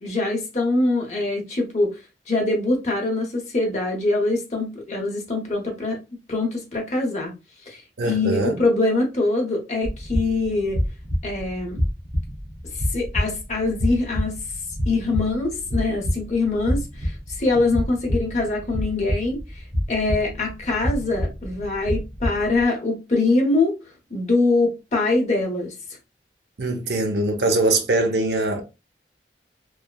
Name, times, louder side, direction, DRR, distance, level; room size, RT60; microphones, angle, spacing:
voice 1, 0.0-2.0 2.3-6.0 6.3-7.3 7.7-7.8 8.0-10.8 11.2-11.8 12.9-14.3 14.9-23.8 24.1-25.7, left 2 dB, 40° left, 0.8 m, -23 dB
voice 2, 8.0-8.6 26.6-28.6, right 2 dB, 70° right, 0.6 m, -22 dB
sound 1, 9.8-22.6, equal, 40° right, 1.0 m, -28 dB
3.2 x 2.1 x 2.2 m
head